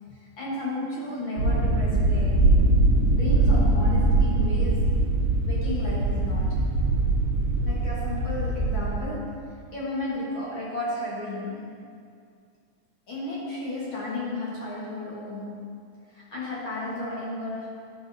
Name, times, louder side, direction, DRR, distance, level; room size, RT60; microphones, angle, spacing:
voice 1, 0.4-2.4 3.1-4.8 5.4-6.6 7.6-9.4 9.7-11.7 13.1-15.7 16.1-17.7, left 2 dB, 50° left, -7 dB, 1.7 m, -33 dB
sound 1, 1.4-9.0, right 2 dB, 70° right, 1.8 m, -22 dB
sound 2, 2.9-6.1, right 1 dB, 55° right, 1.1 m, -41 dB
10.0 x 6.0 x 2.6 m, 2.2 s
omnidirectional pair, 3.4 m